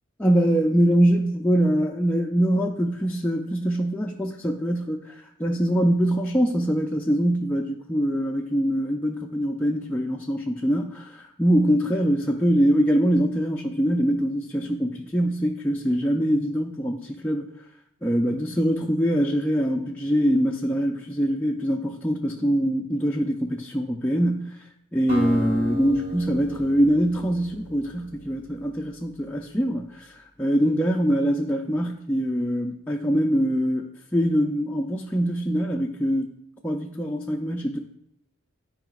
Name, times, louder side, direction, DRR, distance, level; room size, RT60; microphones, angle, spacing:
voice 1, 0.2-17.5 18.0-24.7 24.9-36.3 36.6-37.8, equal, 5° left, -1 dB, 0.4 m, -23 dB
Acoustic guitar, 25.1-29.2, equal, 45° right, 2.6 m, -33 dB
12.0 x 4.8 x 2.4 m, 0.76 s
head